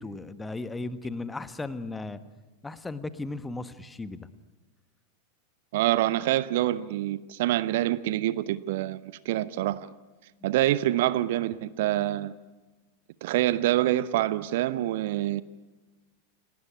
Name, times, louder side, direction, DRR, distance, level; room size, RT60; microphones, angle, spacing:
voice 1, 0.0-2.2 2.6-4.3, left 3 dB, 10° left, 1.3 m, -36 dB
voice 2, 5.7-9.9 10.4-12.3 13.2-15.4, right 14 dB, 55° right, 0.8 m, -26 dB
29.5 x 18.5 x 10.0 m
figure-of-eight pair, 90°, 0 cm